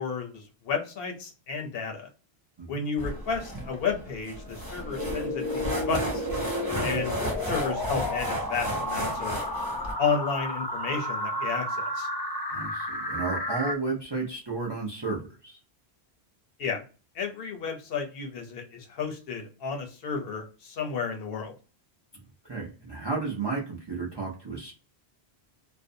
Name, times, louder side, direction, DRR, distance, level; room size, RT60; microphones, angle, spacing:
voice 1, 0.0-2.1 2.7-6.3 6.8-7.1 7.4-9.4 10.0-12.1 16.6-16.8 17.1-21.5, left 5 dB, 65° left, 2 dB, 0.8 m, -32 dB
sound 1, 3.0-9.9, equal, 20° right, 0.9 m, -34 dB
sound 2, 4.9-7.2, right 14 dB, 85° right, 1.0 m, -48 dB
sound 3, 5.0-13.8, left 1 dB, 40° left, 0.3 m, -32 dB
voice 2, 12.5-15.6 22.5-24.7, right 3 dB, 35° right, -2 dB, 0.4 m, -33 dB
2.6 x 2.1 x 2.5 m, 0.34 s
omnidirectional pair, 1.1 m